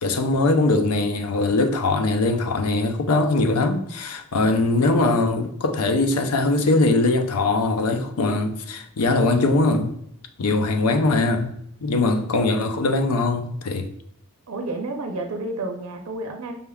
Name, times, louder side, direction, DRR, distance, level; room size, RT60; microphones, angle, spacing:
voice 1, 0.0-9.9 10.4-11.5 11.8-13.9, left 2 dB, 90° left, 0.5 m, -21 dB
voice 2, 11.9-12.3 14.5-16.5, right 2 dB, 75° right, 0.5 m, -31 dB
5.4 x 3.4 x 2.3 m
head